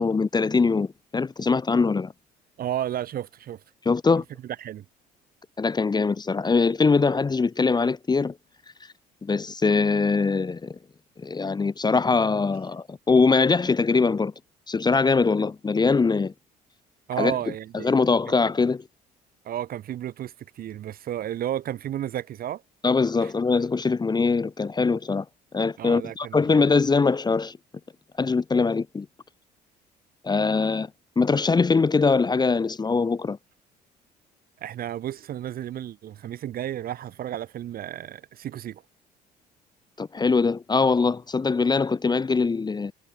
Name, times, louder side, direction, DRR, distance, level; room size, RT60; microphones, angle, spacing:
voice 1, 0.0-2.1 3.9-4.2 5.6-8.3 9.2-10.8 11.2-14.3 14.7-16.3 17.2-17.3 17.7-18.8 22.8-25.2 25.5-27.6 28.2-29.1 30.2-30.9 31.2-33.4 40.0-42.9, left 4 dB, 20° left, 0.7 m, -22 dB
voice 2, 2.6-3.6 4.4-4.8 17.1-17.9 19.4-22.6 23.2-23.3 25.8-26.7 34.6-38.8, right 11 dB, 45° right, 0.7 m, -32 dB
hypercardioid pair, 55°, 21 cm